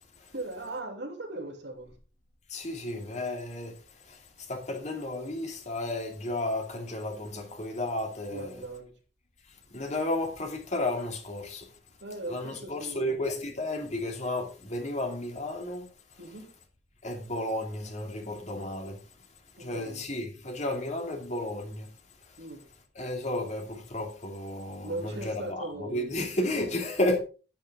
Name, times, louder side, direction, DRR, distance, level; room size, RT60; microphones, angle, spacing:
voice 1, 0.3-1.9 8.3-8.9 12.0-13.2 16.2-16.5 19.6-20.1 22.4-22.6 24.8-26.3, right 2 dB, 80° right, 2.8 m, -39 dB
voice 2, 2.5-3.7 4.1-8.6 9.7-11.7 12.3-15.9 17.0-19.0 19.6-21.9 22.9-27.2, left 1 dB, 40° left, 2.5 m, -33 dB
10.0 x 9.9 x 3.6 m
head